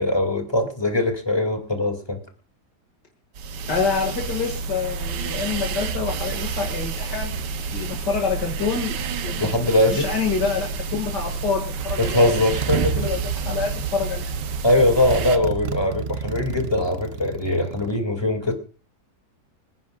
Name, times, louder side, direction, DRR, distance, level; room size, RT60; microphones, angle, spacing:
voice 1, 0.0-2.2 9.4-10.1 12.0-13.0 14.6-18.5, left 1 dB, 15° left, 3 dB, 2.6 m, -21 dB
sound 1, 3.3-15.4, right 5 dB, 85° right, 1.5 m, -29 dB
voice 2, 3.7-9.7 9.9-12.3 13.0-14.3, left 5 dB, 80° left, 2 dB, 2.8 m, -27 dB
Motorcycle, 11.2-11.4 11.8-18.0, right 7 dB, 55° right, 0.7 m, -32 dB
26.5 x 10.0 x 2.5 m, 0.35 s
omnidirectional pair, 1.8 m